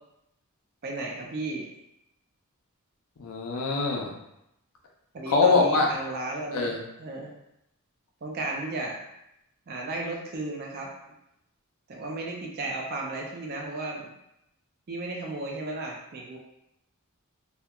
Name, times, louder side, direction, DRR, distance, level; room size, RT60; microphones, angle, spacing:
voice 1, 0.8-1.7 5.1-7.3 8.2-9.0 9.7-10.9 11.9-14.1 14.9-16.4, right 2 dB, 45° right, -1 dB, 0.4 m, -34 dB
voice 2, 3.2-4.1 5.3-5.9 6.5-6.8, left 4 dB, 70° left, 0 dB, 0.5 m, -23 dB
2.8 x 2.1 x 2.3 m, 0.83 s
head